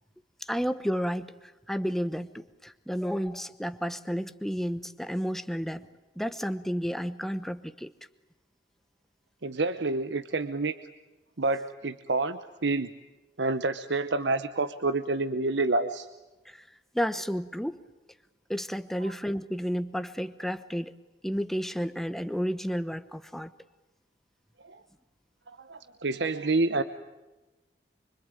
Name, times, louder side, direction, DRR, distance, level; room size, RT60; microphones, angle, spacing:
voice 1, 0.4-5.9 6.2-7.9 16.4-16.6 16.9-17.8 18.5-20.9 21.2-23.5, equal, ahead, 11 dB, 1.0 m, -31 dB
voice 2, 9.4-10.8 11.4-12.9 13.4-16.1 24.6-24.8 25.5-26.8, right 3 dB, 75° right, 11 dB, 1.0 m, -28 dB
25.0 x 25.0 x 9.1 m, 1.1 s
head